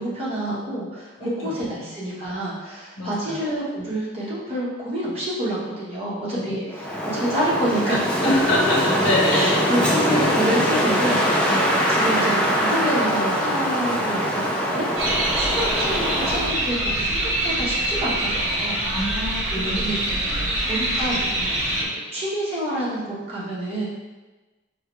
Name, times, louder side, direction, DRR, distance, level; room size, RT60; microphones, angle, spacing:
voice 1, 0.0-6.6 7.0-8.1 9.3-11.6 12.0-18.8 19.5-20.0 20.7-21.6 21.9-23.8, right 1 dB, 30° right, -8 dB, 1.2 m, -28 dB
voice 2, 1.2-1.7 3.0-3.5 6.3-6.7 8.2-9.5 11.5-11.6 18.8-20.5, left 1 dB, 80° left, -4 dB, 1.3 m, -26 dB
Wind, 6.7-16.6, equal, 5° left, 0.5 m, -22 dB
sound 1, 15.0-21.8, right 1 dB, 65° right, 1.0 m, -24 dB
4.6 x 3.4 x 3.1 m, 1.2 s
head